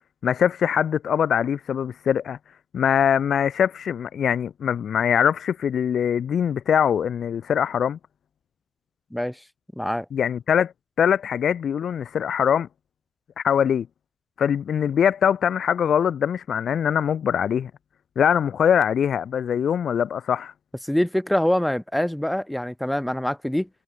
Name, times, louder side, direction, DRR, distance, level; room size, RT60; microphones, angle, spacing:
voice 1, 0.2-2.4 2.7-8.0 10.1-10.7 11.0-12.7 13.4-13.9 14.4-17.7 18.2-20.5, left 8 dB, 60° left, 0.6 m, -22 dB
voice 2, 9.7-10.0 20.8-23.7, left 1 dB, 5° left, 1.7 m, -24 dB
supercardioid pair, 70°, 0 cm